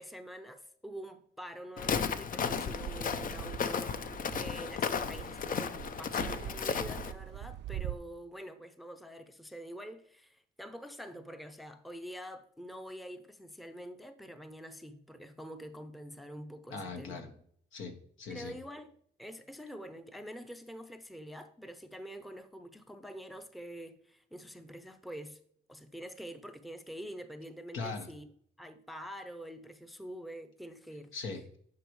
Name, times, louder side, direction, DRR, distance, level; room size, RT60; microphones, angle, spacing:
voice 1, 0.0-17.4 18.3-25.4 25.7-28.3 28.6-31.1, equal, ahead, 0.6 m, -46 dB
Walk footsteps, 1.8-7.1, left 6 dB, 45° left, 0.6 m, -34 dB
Fixed-wing aircraft airplane, 2.4-7.9, right 12 dB, 65° right, 0.4 m, -44 dB
voice 2, 16.7-17.3 17.7-18.5 27.7-28.1 31.1-31.6, left 4 dB, 80° left, 1.5 m, -40 dB
10.5 x 5.0 x 3.1 m
cardioid pair, 90°, 20 cm